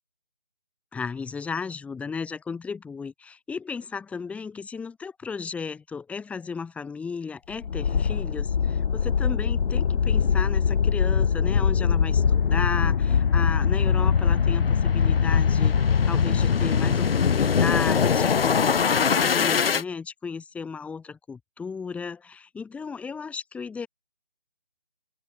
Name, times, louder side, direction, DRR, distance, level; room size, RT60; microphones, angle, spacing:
voice 1, 0.9-15.8 16.0-23.9, left 5 dB, 5° left, 4.2 m, -34 dB
sound 1, 7.6-19.8, left 6 dB, 75° left, 0.7 m, -22 dB
figure-of-eight pair, 155°, 30 cm